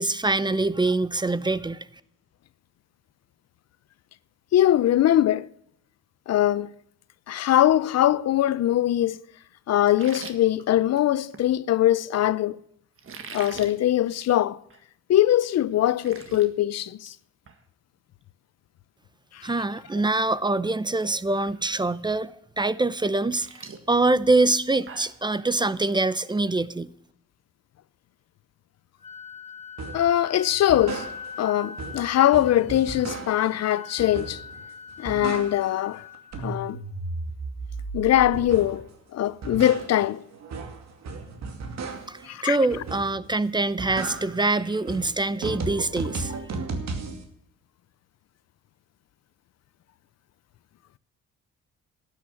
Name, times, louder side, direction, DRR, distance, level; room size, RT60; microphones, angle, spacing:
voice 1, 0.0-1.9 19.4-26.9 42.1-46.3, right 2 dB, 15° right, 0.6 m, -24 dB
voice 2, 4.5-5.5 6.3-6.7 7.3-9.2 9.7-12.6 13.3-14.6 15.1-17.1 19.3-19.5 29.9-31.1 31.4-34.4 35.0-36.0 36.4-36.8 37.9-40.2 42.3-42.6, left 12 dB, 60° left, 0.5 m, -22 dB
sound 1, 9.9-11.5 13.0-13.7 14.1-14.4 14.7-14.8 15.3-15.4 15.7-16.5 16.8-17.2 17.5-17.6 19.4-19.5 20.0-20.3 20.6-21.0 21.5-21.6 22.9-25.2, right 5 dB, 45° right, 1.7 m, -43 dB
Wind instrument woodwind instrument, 29.0-36.8, left 6 dB, 20° left, 1.6 m, -43 dB
sound 2, 29.8-30.1 30.5-31.5 31.8-33.6 34.0-34.6 34.9-35.9 36.1-38.9 39.2-42.3 42.7-43.3 43.6-47.2, right 4 dB, 60° right, 2.5 m, -35 dB
12.5 x 8.7 x 9.5 m
cardioid pair, 90°, 30 cm